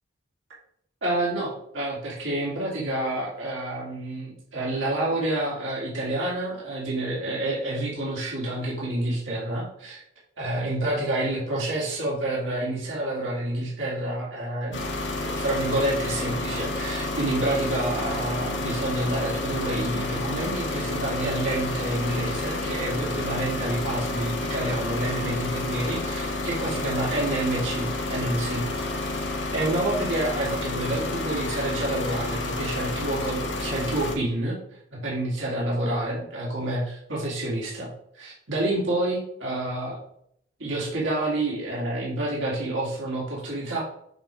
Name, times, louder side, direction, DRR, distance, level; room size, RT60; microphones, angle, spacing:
voice 1, 1.0-10.0 10.4-14.8 15.2-28.9 29.5-34.6 34.9-40.0 40.6-43.8, right 1 dB, 85° right, -5 dB, 2.4 m, -28 dB
sound 1, 14.7-34.1, left 2 dB, 70° left, 1.1 m, -30 dB
7.9 x 3.5 x 5.2 m, 0.70 s
head